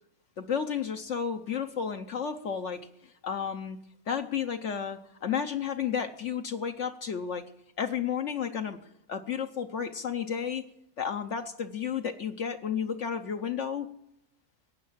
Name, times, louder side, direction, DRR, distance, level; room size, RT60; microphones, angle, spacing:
voice 1, 0.4-3.8 4.1-7.5 7.8-8.8 9.1-10.7 11.0-13.9, left 7 dB, 60° left, 6 dB, 1.0 m, -32 dB
15.5 x 9.4 x 7.4 m, 0.77 s
omnidirectional pair, 1.5 m